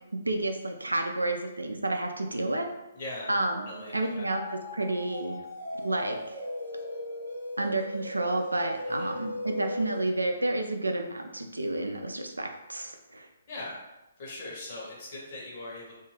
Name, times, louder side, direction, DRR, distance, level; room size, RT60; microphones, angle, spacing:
voice 1, 0.1-2.7 3.3-4.4 4.7-5.4 5.8-6.4 7.6-13.3, right 2 dB, 85° right, 4 dB, 0.4 m, -30 dB
voice 2, 3.0-3.3 3.7-4.3 8.9-9.1 13.5-13.8 14.2-16.0, left 2 dB, 40° left, -4 dB, 1.0 m, -40 dB
sound 1, 3.4-10.0, left 1 dB, 70° left, 0.8 m, -38 dB
2.6 x 2.3 x 3.1 m, 0.97 s
figure-of-eight pair, 130°, 0 cm